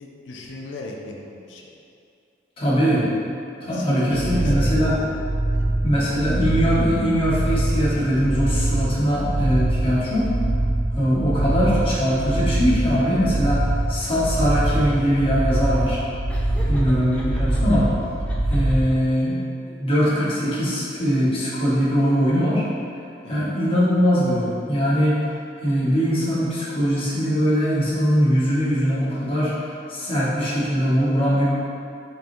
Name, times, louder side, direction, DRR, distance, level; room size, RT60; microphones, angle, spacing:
voice 1, 0.0-1.6 2.7-2.8 3.6-5.2 5.5-5.7 16.4-16.7 23.2-23.5, left 2 dB, 85° left, 0 dB, 0.4 m, -38 dB
voice 2, 2.6-3.1 3.6-5.0 5.8-10.3 10.9-16.0 16.6-17.9 18.5-19.4 19.7-22.6 23.3-25.2 25.6-29.5 29.9-31.4, equal, 30° left, -9 dB, 1.0 m, -21 dB
sound 1, 4.1-18.8, right 1 dB, 85° right, 0.5 m, -24 dB
Laughter, 16.3-17.8 18.3-19.1, equal, 5° left, 0.4 m, -41 dB
3.9 x 3.5 x 2.5 m, 2.6 s
head